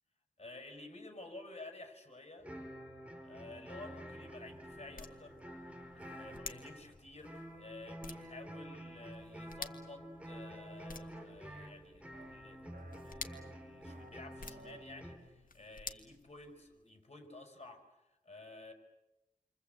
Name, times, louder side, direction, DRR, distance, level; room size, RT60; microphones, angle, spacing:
voice 1, 0.4-2.5 3.2-5.4 6.1-18.7, left 2 dB, 45° left, 5 dB, 5.8 m, -52 dB
sound 1, 2.4-15.2, equal, 10° right, 4.7 m, -49 dB
sound 2, 3.8-16.9, left 4 dB, 70° left, 1.9 m, -53 dB
sound 3, 11.5-11.7 12.1-12.4 12.7-13.0 13.3-14.1 14.4-14.8, right 3 dB, 85° right, 2.9 m, -57 dB
29.5 x 24.5 x 8.3 m, 0.98 s
wide cardioid pair, 70°, 15 cm